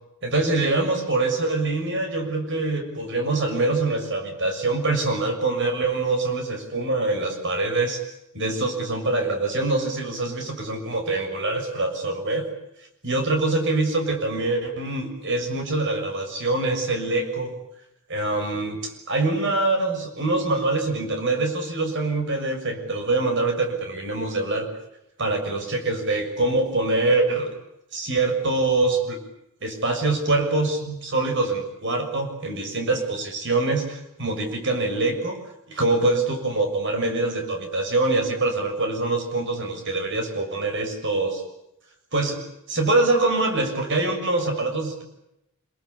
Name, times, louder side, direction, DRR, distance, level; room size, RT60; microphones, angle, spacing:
voice 1, 0.2-8.0 8.3-12.5 13.0-17.5 18.1-24.7 25.2-27.5 27.9-29.2 29.6-35.4 35.7-41.4 42.1-42.4 42.7-45.0, right 2 dB, 55° right, 5 dB, 6.6 m, -24 dB
27.0 x 22.5 x 8.5 m, 0.84 s
head